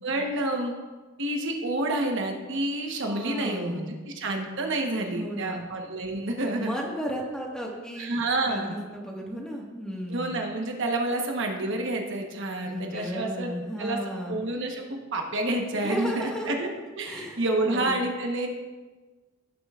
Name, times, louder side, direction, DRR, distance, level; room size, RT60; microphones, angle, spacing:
voice 1, 0.0-0.7 1.2-6.7 8.0-8.8 10.1-13.5 13.8-14.0 14.3-16.7 17.0-18.5, right 2 dB, 60° right, 2 dB, 1.1 m, -29 dB
voice 2, 3.1-4.0 5.1-5.6 6.6-8.2 8.4-10.4 12.6-14.4 15.8-16.6 17.1-18.0, equal, 5° left, -2 dB, 1.6 m, -34 dB
17.0 x 7.5 x 2.5 m, 1.3 s
head